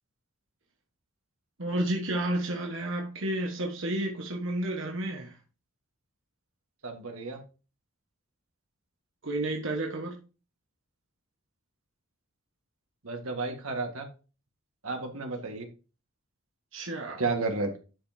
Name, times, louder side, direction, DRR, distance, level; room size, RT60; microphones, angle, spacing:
voice 1, 1.6-5.3 9.2-10.2 16.7-17.2, right 1 dB, 60° right, 1.4 m, -31 dB
voice 2, 6.8-7.4 13.0-14.1 14.8-15.7 17.2-17.7, right 3 dB, 80° right, 1.8 m, -32 dB
11.0 x 5.3 x 2.8 m
head